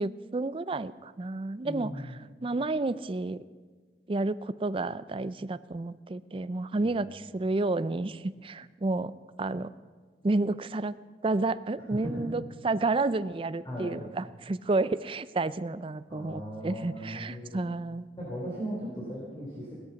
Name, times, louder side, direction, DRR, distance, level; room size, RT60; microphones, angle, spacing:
voice 1, 0.0-1.9 2.4-3.4 4.1-9.1 9.4-9.7 10.2-10.9 11.2-18.1, right 2 dB, 30° right, 15 dB, 0.4 m, -30 dB
voice 2, 1.6-2.2 6.7-6.9 12.0-12.2 13.6-14.0 16.1-17.6 18.2-19.7, equal, 25° left, -5 dB, 3.4 m, -37 dB
18.0 x 13.0 x 5.8 m, 1.4 s
head